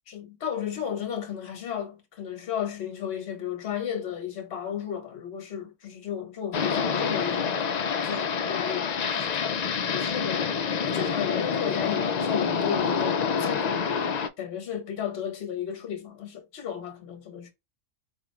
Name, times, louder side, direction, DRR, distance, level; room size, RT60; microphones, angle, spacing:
voice 1, 0.1-7.6 8.0-9.6 9.9-10.5 10.8-13.8 14.4-17.5, left 9 dB, 60° left, 1.1 m, -34 dB
sound 1, 6.5-14.3, left 6 dB, 80° left, 0.3 m, -27 dB
4.0 x 2.4 x 3.1 m
omnidirectional pair, 1.3 m